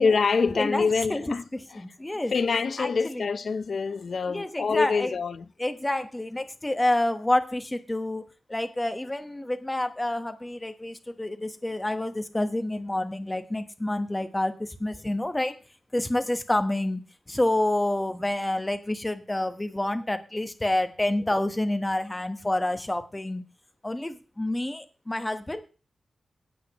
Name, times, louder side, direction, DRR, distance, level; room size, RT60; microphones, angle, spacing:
voice 1, 0.0-1.4 1.7-1.8 2.3-5.5, left 5 dB, 55° left, 0.7 m, -25 dB
voice 2, 0.5-1.2 1.7-2.3 2.8-3.3 4.3-5.1 5.6-8.2 8.5-15.5 15.9-17.0 17.3-23.4 23.8-25.6, left 1 dB, 15° left, 1.2 m, -28 dB
17.5 x 8.5 x 3.1 m
wide cardioid pair, 160°, 0 cm